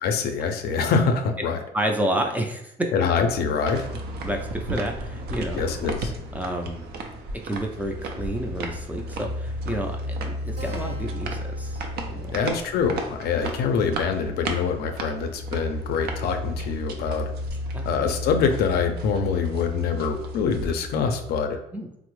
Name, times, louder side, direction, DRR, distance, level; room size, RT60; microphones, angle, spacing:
voice 1, 0.0-1.6 2.9-3.9 5.5-6.1 12.3-17.3 17.8-21.6, left 5 dB, 70° left, 6 dB, 0.4 m, -25 dB
voice 2, 1.7-2.9 4.2-5.6 6.3-6.8 7.4-11.8 12.1-12.3 17.7-17.9 21.7-22.0, right 1 dB, 10° right, 3 dB, 0.4 m, -30 dB
sound 1, 3.0-21.4, left 1 dB, 35° right, 0.7 m, -35 dB
sound 2, 3.6-20.7, right 3 dB, 70° right, 0.5 m, -37 dB
Keyboard (musical), 10.6-15.5, right 1 dB, 90° right, 0.8 m, -49 dB
3.4 x 2.0 x 3.0 m, 0.79 s
cardioid pair, 110°, 17 cm